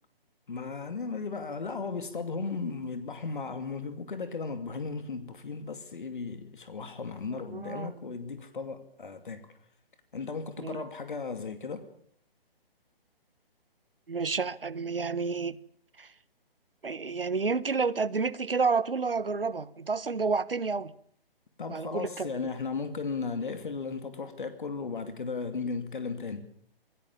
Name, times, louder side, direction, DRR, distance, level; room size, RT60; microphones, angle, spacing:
voice 1, 0.5-9.5 10.1-11.9 21.6-26.5, left 4 dB, 55° left, 2.6 m, -36 dB
voice 2, 7.5-7.9 10.6-10.8 14.1-15.6 16.0-16.1 16.8-20.9 21.7-22.3, right 4 dB, 70° right, 1.2 m, -30 dB
27.0 x 16.5 x 7.3 m
figure-of-eight pair, 140°, 29 cm